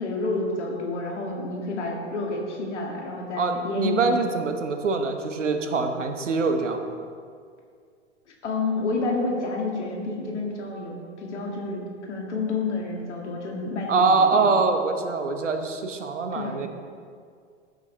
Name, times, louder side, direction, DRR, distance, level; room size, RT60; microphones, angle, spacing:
voice 1, 0.0-4.2 8.4-14.5 16.3-16.6, left 3 dB, 70° left, -1 dB, 2.1 m, -29 dB
voice 2, 3.4-6.8 13.9-16.7, right 4 dB, 80° right, 6 dB, 1.0 m, -24 dB
14.5 x 6.3 x 3.3 m, 2.2 s
figure-of-eight pair, 95°, 36 cm